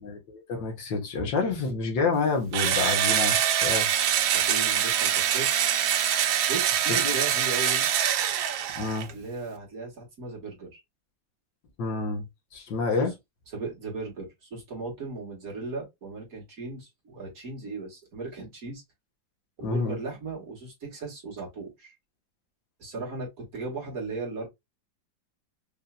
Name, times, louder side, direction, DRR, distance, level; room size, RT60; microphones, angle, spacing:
voice 1, 0.0-3.9 4.4-4.5 6.9-7.1 8.8-9.1 11.8-12.3 12.5-13.1 19.6-20.0, left 4 dB, 80° left, 2.0 m, -28 dB
Engine / Drill, 2.5-9.1, right 9 dB, 85° right, 1.4 m, -24 dB
voice 2, 4.3-5.5 6.5-7.9 9.1-10.8 13.0-13.1 13.5-18.8 19.6-22.0 22.8-24.5, right 3 dB, 50° right, 2.1 m, -37 dB
5.4 x 2.8 x 2.2 m
omnidirectional pair, 2.0 m